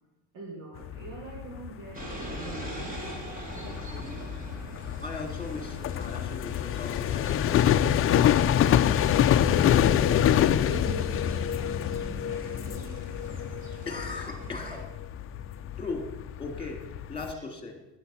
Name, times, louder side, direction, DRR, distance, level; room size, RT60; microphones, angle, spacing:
voice 1, 0.3-3.2 7.9-13.9 14.1-14.2 15.2-15.8 17.3-17.4, right 3 dB, 60° right, -1 dB, 2.3 m, -44 dB
sound 1, 0.8-17.3, left 10 dB, 40° left, 0.6 m, -26 dB
sound 2, 1.9-14.8, right 1 dB, 25° right, 2.9 m, -42 dB
voice 2, 5.0-8.0 13.1-13.2 13.8-14.9 15.8-16.1 16.4-16.8 17.1-17.8, left 3 dB, 15° left, 3 dB, 2.7 m, -38 dB
12.0 x 9.8 x 5.7 m, 1.0 s
cardioid pair, 120°, 35 cm